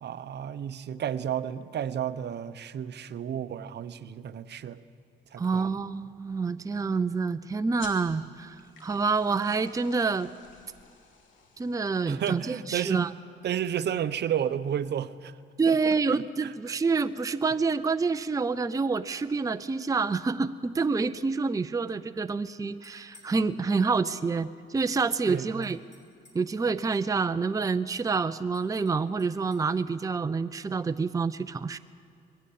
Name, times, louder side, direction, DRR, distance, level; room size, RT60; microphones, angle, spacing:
voice 1, 0.0-4.8 5.3-5.8 12.1-13.1 13.4-15.3 15.7-16.8 25.3-25.7, right 9 dB, 60° right, 14 dB, 0.8 m, -32 dB
voice 2, 5.4-10.3 11.6-13.1 15.6-25.8 26.3-31.8, right 4 dB, 15° right, 11 dB, 0.5 m, -27 dB
sound 1, 7.8-12.8, left 5 dB, 75° left, 2.7 m, -51 dB
sound 2, 22.7-23.4 25.3-26.5 28.5-29.7, left 2 dB, 35° left, 5.2 m, -59 dB
20.5 x 15.0 x 8.6 m, 2.4 s
cardioid pair, 90°, 20 cm